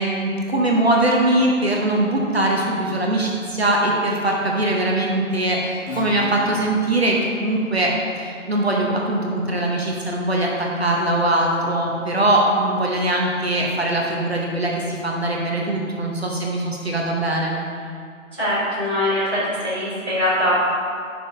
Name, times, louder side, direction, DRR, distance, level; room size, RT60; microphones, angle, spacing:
voice 1, 0.0-17.6, right 1 dB, 50° right, -1 dB, 0.9 m, -21 dB
Acoustic guitar / Strum, 5.9-11.2, left 1 dB, 90° left, 1.2 m, -37 dB
voice 2, 18.4-20.5, left 1 dB, 10° left, -18 dB, 1.2 m, -22 dB
9.2 x 6.1 x 2.7 m, 2.3 s
figure-of-eight pair, 180°, 40 cm